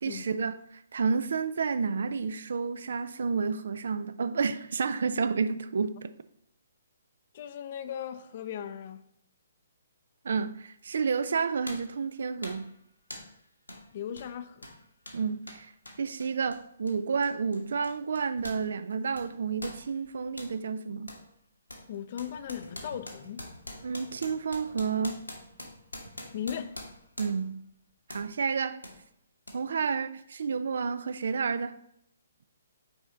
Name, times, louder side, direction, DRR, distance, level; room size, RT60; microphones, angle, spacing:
voice 1, 0.0-6.1 10.2-12.7 15.1-15.7 16.0-21.1 23.8-25.2 27.2-27.6 28.1-28.8 29.5-31.8, right 5 dB, 60° right, 0.3 m, -30 dB
voice 2, 7.3-9.0 13.9-14.6 21.9-23.5 26.3-26.8, left 9 dB, 40° left, 0.4 m, -37 dB
sound 1, 10.8-10.9 11.7-12.0 12.4-12.7 13.1-13.4 13.7-13.9 14.1-18.7 18.9-20.6 21.1-21.3 21.7-27.5 28.1-28.3 28.8-29.0 29.5-29.6, left 1 dB, 85° left, 1.2 m, -45 dB
6.1 x 4.1 x 3.7 m
figure-of-eight pair, 130°, 0 cm